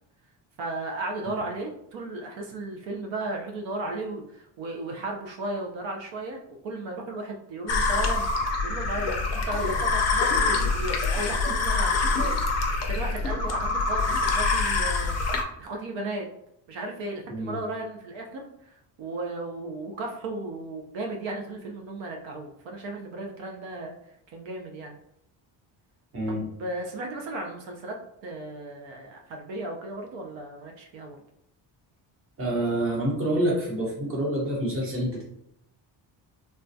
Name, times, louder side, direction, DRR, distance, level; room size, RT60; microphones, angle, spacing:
voice 1, 0.6-8.3 8.6-12.4 12.9-16.3 16.7-23.9 24.3-25.0 26.3-28.0 28.2-31.2, right 2 dB, 80° right, 1 dB, 0.6 m, -35 dB
sound 1, 7.7-15.4, left 3 dB, 40° left, 0.4 m, -25 dB
voice 2, 26.1-26.5 32.4-35.2, right 1 dB, 30° right, -3 dB, 1.0 m, -27 dB
3.3 x 2.2 x 2.6 m, 0.78 s
cardioid pair, 160°, 44 cm